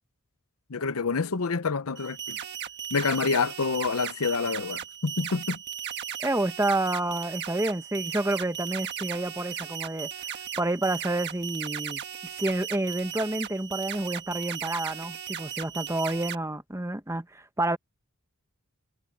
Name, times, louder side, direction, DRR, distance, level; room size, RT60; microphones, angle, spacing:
voice 1, 0.7-2.4 2.9-5.6, left 4 dB, 70° left, 0.8 m, -27 dB
sound 1, 2.0-16.4, right 9 dB, 50° right, 1.5 m, -36 dB
voice 2, 6.2-10.1 10.6-12.0 12.4-17.8, right 2 dB, 15° right, 1.0 m, -29 dB
head